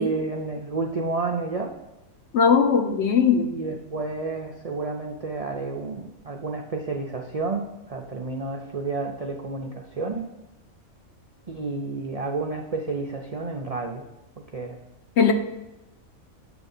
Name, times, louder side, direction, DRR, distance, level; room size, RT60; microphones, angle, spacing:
voice 1, 0.0-1.7 3.5-10.3 11.5-14.1 14.5-14.8, right 3 dB, 60° right, 2 dB, 0.4 m, -30 dB
voice 2, 2.3-3.5 15.2-15.3, left 6 dB, 60° left, 6 dB, 0.8 m, -19 dB
7.7 x 3.6 x 5.4 m, 0.97 s
omnidirectional pair, 1.5 m